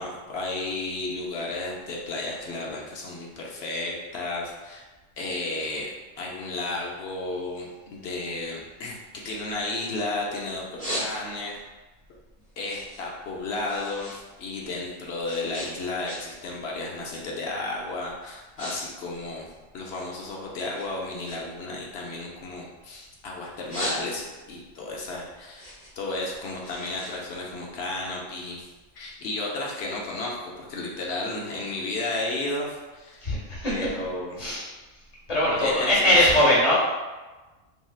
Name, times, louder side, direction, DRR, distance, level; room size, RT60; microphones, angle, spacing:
voice 1, 0.0-4.9 5.2-9.0 9.2-11.6 12.6-19.5 19.7-25.7 26.0-28.7 28.9-33.3 33.7-34.4 35.6-36.2, left 2 dB, 65° left, -2 dB, 0.8 m, -33 dB
sound 1, 10.8-11.6 12.0-14.2 14.5-16.5 16.8-17.2 17.8-17.9 18.2-18.8 19.0-20.3 20.7-23.1 23.5-24.5 24.9-28.0, equal, 5° left, 0.7 m, -37 dB
voice 2, 33.2-33.9 34.4-34.7 35.3-36.8, left 1 dB, 35° left, -7 dB, 1.0 m, -21 dB
3.1 x 2.7 x 2.3 m, 1.2 s
omnidirectional pair, 1.3 m